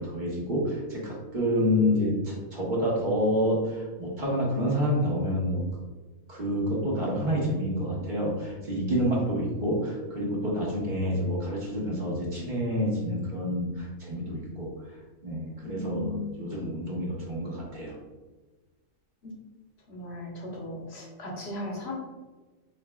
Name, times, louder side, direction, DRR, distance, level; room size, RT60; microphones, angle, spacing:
voice 1, 0.0-5.6 6.3-14.7 15.2-18.0, equal, 35° right, -4 dB, 1.2 m, -28 dB
voice 2, 15.6-16.3 19.2-19.3 19.9-21.9, left 2 dB, 55° left, -1 dB, 1.2 m, -37 dB
4.7 x 4.0 x 2.3 m, 1.2 s
omnidirectional pair, 1.4 m